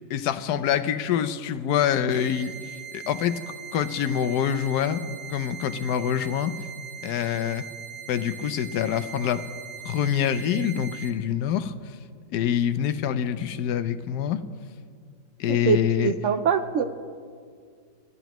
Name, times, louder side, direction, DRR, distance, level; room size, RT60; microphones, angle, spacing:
voice 1, 0.1-3.4 3.7-5.0 5.3-6.6 7.0-7.7 8.1-9.4 9.8-11.7 12.3-14.4 15.4-16.1, left 9 dB, 70° left, 11 dB, 1.2 m, -25 dB
sound 1, 2.1-11.1, right 8 dB, 40° right, 1.4 m, -40 dB
voice 2, 15.5-16.8, right 7 dB, 75° right, 9 dB, 0.6 m, -24 dB
26.0 x 15.0 x 3.0 m, 2.1 s
omnidirectional pair, 2.0 m